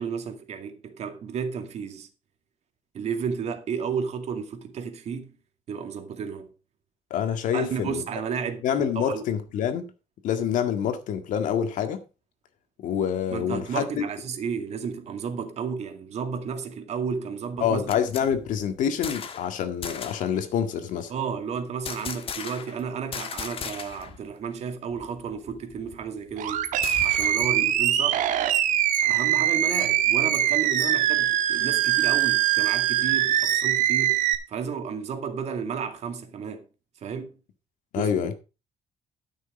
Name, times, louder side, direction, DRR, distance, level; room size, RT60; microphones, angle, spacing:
voice 1, 0.0-2.1 2.9-5.3 5.7-6.5 7.5-8.7 9.0-9.2 13.3-17.9 21.1-26.7 27.0-28.3 29.0-34.2 34.5-36.7 37.0-37.3 38.0-38.3, right 6 dB, 55° right, 2.2 m, -32 dB
voice 2, 7.1-8.0 8.6-9.9 10.2-12.0 12.8-14.0 17.6-21.1 37.9-38.3, left 8 dB, 75° left, 1.8 m, -26 dB
sound 1, 17.6-19.5 19.8-20.3 21.8-22.8 23.1-24.2 24.5-24.6 24.9-27.5, left 6 dB, 45° left, 1.4 m, -37 dB
Animal, 26.4-34.3, right 12 dB, 75° right, 1.5 m, -23 dB
12.5 x 6.5 x 5.0 m
cardioid pair, 130°, 13 cm